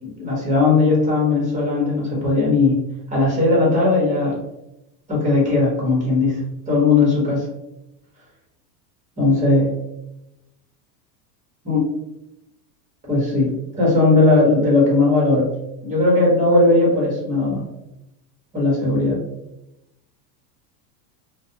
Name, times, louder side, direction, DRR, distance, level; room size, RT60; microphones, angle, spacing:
voice 1, 0.0-2.7 3.1-4.4 5.1-7.5 9.2-9.7 11.6-11.9 13.1-13.5 13.7-15.5 15.8-17.6 18.5-19.2, left 3 dB, 15° right, -4 dB, 1.1 m, -18 dB
2.5 x 2.2 x 2.7 m, 0.89 s
supercardioid pair, 140°, 50 cm